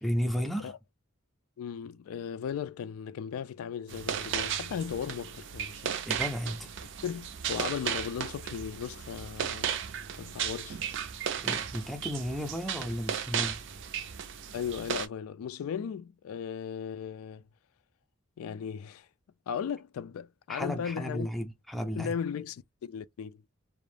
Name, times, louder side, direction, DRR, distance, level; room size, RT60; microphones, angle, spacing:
voice 1, 0.0-0.7 6.0-6.7 11.4-13.6 20.5-22.2, equal, ahead, 0.4 m, -33 dB
voice 2, 1.6-6.0 7.0-9.8 10.2-10.8 14.5-17.4 18.4-19.1 19.5-21.3 21.9-23.4, left 7 dB, 85° left, 0.3 m, -36 dB
sound 1, 3.9-15.1, right 8 dB, 60° right, 0.4 m, -35 dB
2.5 x 2.0 x 3.2 m
head